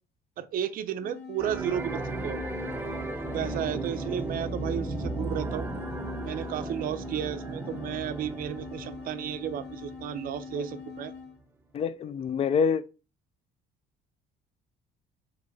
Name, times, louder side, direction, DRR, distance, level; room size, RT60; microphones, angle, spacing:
voice 1, 0.4-2.4 3.3-5.7 6.2-11.1, right 10 dB, 55° right, 0.5 m, -33 dB
sound 1, 1.0-11.4, left 5 dB, 80° left, 1.5 m, -43 dB
sound 2, 1.4-11.1, right 2 dB, 15° right, 0.8 m, -36 dB
voice 2, 11.7-12.8, left 6 dB, 40° left, 0.4 m, -26 dB
3.6 x 3.0 x 3.9 m
cardioid pair, 110°, 17 cm